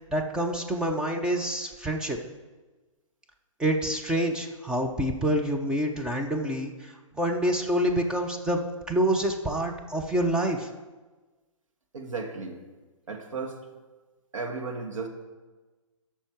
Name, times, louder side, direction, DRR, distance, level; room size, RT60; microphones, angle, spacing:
voice 1, 0.1-2.2 3.6-10.7, right 1 dB, 5° right, 0 dB, 0.6 m, -27 dB
voice 2, 11.9-12.6 13.1-13.6 14.3-15.1, right 4 dB, 70° right, 2 dB, 1.7 m, -34 dB
13.0 x 5.6 x 4.6 m, 1.2 s
figure-of-eight pair, 125°, 17 cm